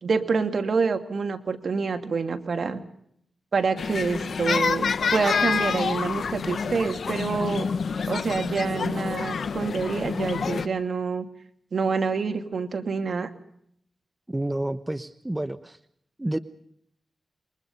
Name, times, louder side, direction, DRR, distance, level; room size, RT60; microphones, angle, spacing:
voice 1, 0.0-2.8 3.5-7.7 8.1-11.2 11.7-13.3, right 5 dB, 65° right, 7 dB, 2.4 m, -27 dB
sound 1, 3.8-10.7, left 5 dB, 70° left, 1.1 m, -27 dB
voice 2, 14.3-15.8 16.2-16.4, right 1 dB, 15° right, 11 dB, 1.0 m, -29 dB
28.0 x 23.0 x 5.4 m, 0.70 s
wide cardioid pair, 80°, 0 cm